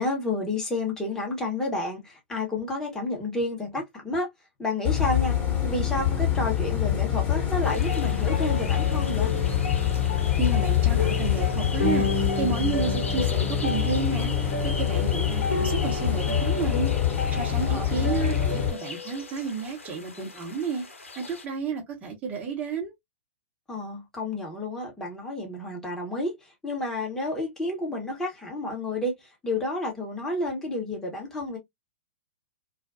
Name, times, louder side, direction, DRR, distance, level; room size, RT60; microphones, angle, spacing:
voice 1, 0.0-4.3 4.6-5.4 5.6-9.3 17.7-18.3 23.7-26.4 26.6-29.2 29.4-31.6, left 2 dB, 5° left, 1.2 m, -30 dB
Bus, 4.8-18.7, left 10 dB, 25° left, 1.3 m, -25 dB
sound 1, 7.6-21.4, left 3 dB, 85° left, 0.8 m, -33 dB
voice 2, 10.4-16.9 17.3-20.8 21.2-22.9, right 5 dB, 25° right, 1.1 m, -31 dB
2.4 x 2.4 x 2.5 m
hypercardioid pair, 115°, 7 cm